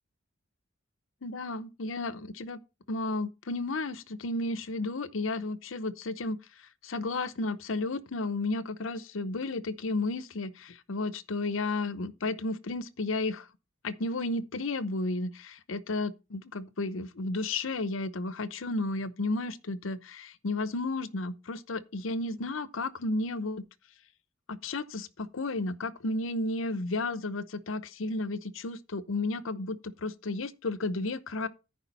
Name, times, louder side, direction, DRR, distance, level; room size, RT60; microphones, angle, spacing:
voice 1, 1.2-2.6 2.9-6.4 6.8-13.5 13.8-23.6 24.5-31.5, left 2 dB, 75° left, 0.8 m, -33 dB
14.5 x 5.0 x 4.1 m
head